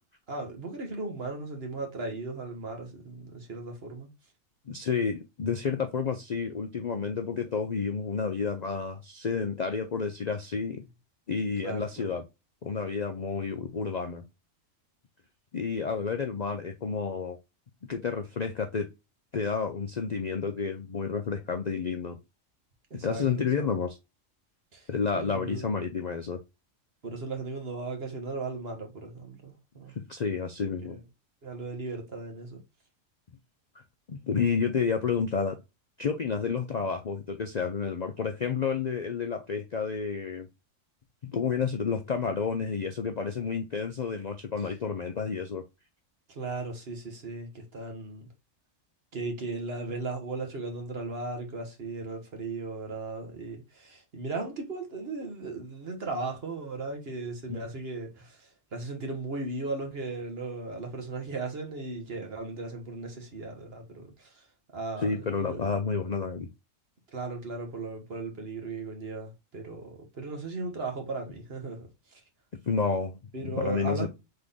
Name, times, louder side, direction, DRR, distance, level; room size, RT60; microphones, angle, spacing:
voice 1, 0.3-4.1 11.6-12.1 22.9-23.7 24.7-25.6 27.0-29.9 30.9-31.0 31.4-32.6 46.3-48.3 49.1-64.5 64.7-65.7 67.1-72.2 73.3-74.1, right 3 dB, 50° right, 1.6 m, -37 dB
voice 2, 4.7-10.9 11.3-12.2 12.6-14.2 15.5-17.4 17.9-18.9 19.3-22.2 22.9-24.0 24.9-26.4 30.0-31.0 34.1-35.6 36.0-40.5 41.2-45.6 57.5-57.6 65.0-66.5 72.6-73.2 73.5-74.1, left 5 dB, 50° left, 0.5 m, -30 dB
3.9 x 3.7 x 3.5 m
omnidirectional pair, 1.3 m